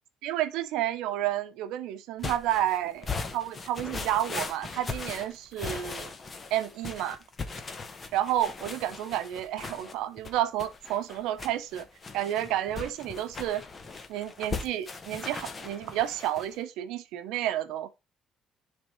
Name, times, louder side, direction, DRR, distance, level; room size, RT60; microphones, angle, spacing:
voice 1, 0.2-6.1 6.5-7.2 8.1-11.8 12.1-13.6 14.1-17.9, right 12 dB, 85° right, 0.7 m, -30 dB
sound 1, 2.2-16.5, left 4 dB, 30° left, 0.8 m, -39 dB
10.5 x 3.6 x 3.1 m
cardioid pair, 130°, 0 cm